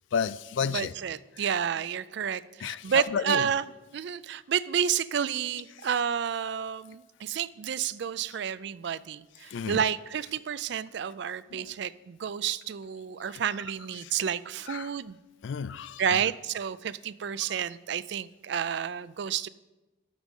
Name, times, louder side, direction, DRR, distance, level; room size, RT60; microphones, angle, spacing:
voice 1, 0.1-0.9 1.4-1.5 2.6-3.5 5.8-5.9 9.5-9.8 11.5-11.7 14.0-14.1 14.7-14.9 15.4-16.3 17.5-17.6, left 6 dB, 65° left, 0.3 m, -32 dB
voice 2, 0.7-3.6 3.9-15.2 16.0-19.5, right 8 dB, 55° right, 0.3 m, -30 dB
12.5 x 5.3 x 6.4 m
head